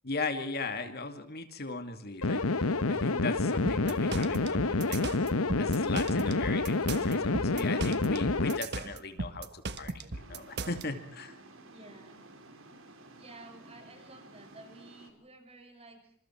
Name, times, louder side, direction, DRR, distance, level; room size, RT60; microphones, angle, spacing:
voice 1, 0.0-5.2 5.6-11.4, left 3 dB, 50° left, 7 dB, 2.4 m, -38 dB
sound 1, 2.2-8.6, left 3 dB, 80° left, 1.1 m, -28 dB
sound 2, 3.7-10.8, right 3 dB, 50° right, 1.4 m, -37 dB
sound 3, 10.1-15.1, right 2 dB, 70° right, 5.1 m, -53 dB
voice 2, 11.7-12.2 13.2-16.1, right 2 dB, 30° right, 5 dB, 6.6 m, -52 dB
28.0 x 26.5 x 4.6 m, 0.62 s
head